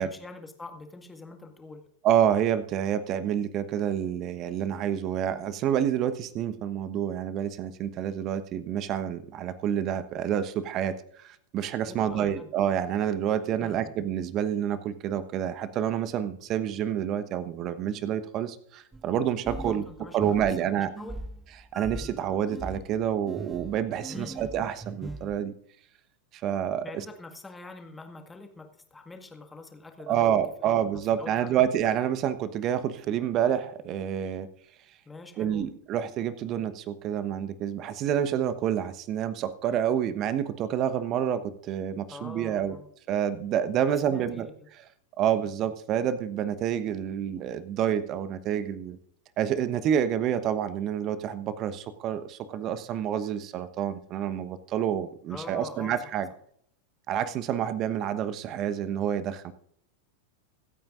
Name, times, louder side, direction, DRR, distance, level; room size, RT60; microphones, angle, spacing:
voice 1, 0.0-1.8 11.9-12.5 13.6-13.9 19.6-21.1 24.1-24.5 26.8-31.5 35.1-35.7 42.1-42.9 43.9-44.7 55.3-56.1, left 3 dB, 10° left, 5 dB, 1.8 m, -44 dB
voice 2, 2.0-20.9 21.7-25.5 26.3-27.1 30.0-34.5 35.4-42.8 43.1-44.9 45.2-49.0 49.4-56.3 57.1-59.5, right 9 dB, 35° right, 13 dB, 1.1 m, -28 dB
sound 1, 18.9-25.4, right 2 dB, 10° right, 0.5 m, -40 dB
25.0 x 9.0 x 2.5 m, 0.66 s
figure-of-eight pair, 90°, 0 cm